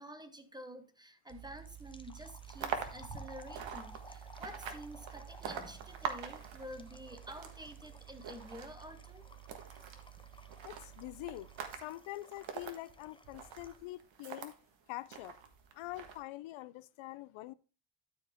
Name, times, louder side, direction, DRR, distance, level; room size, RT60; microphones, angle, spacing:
voice 1, 0.0-9.3, equal, 10° right, 1.1 m, -49 dB
sound 1, 1.3-13.9, left 3 dB, 10° left, 0.6 m, -58 dB
sound 2, 1.3-11.8, right 12 dB, 50° right, 0.5 m, -53 dB
sound 3, 2.4-14.5 15.0-16.2, right 7 dB, 65° right, 1.6 m, -45 dB
voice 2, 10.6-11.5 11.8-14.5 14.9-15.4 15.7-17.5, left 16 dB, 70° left, 0.6 m, -45 dB
12.0 x 4.9 x 3.6 m
cardioid pair, 90°, 49 cm